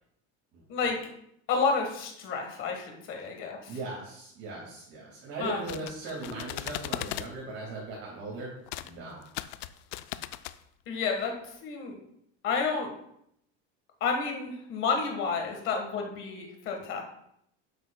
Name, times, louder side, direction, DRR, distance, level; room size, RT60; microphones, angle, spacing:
voice 1, 1.5-3.8 5.4-5.7 6.2-6.4 10.9-12.0 12.4-12.9 14.0-17.0, left 5 dB, 40° left, 2 dB, 1.5 m, -30 dB
voice 2, 3.7-8.5 8.8-9.2, right 3 dB, 45° right, -5 dB, 2.1 m, -39 dB
sound 1, 5.4-7.3 8.7-8.9 9.2-10.6, left 15 dB, 75° left, 0.5 m, -38 dB
10.0 x 7.9 x 2.3 m, 0.75 s
cardioid pair, 175°, 31 cm